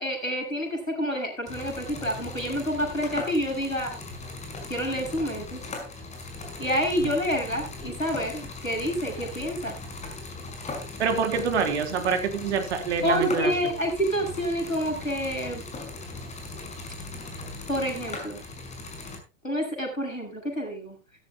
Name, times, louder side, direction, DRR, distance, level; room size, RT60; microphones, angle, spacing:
voice 1, 0.0-3.9 4.7-5.6 6.6-9.8 13.0-15.6 17.7-18.4 19.4-21.0, equal, 90° left, 2 dB, 7.4 m, -28 dB
sound 1, 1.5-19.2, left 3 dB, 15° left, 5.5 m, -39 dB
voice 2, 11.0-13.5, right 6 dB, 55° right, 7 dB, 3.4 m, -26 dB
16.0 x 14.5 x 2.3 m, 0.30 s
figure-of-eight pair, 95°, 39 cm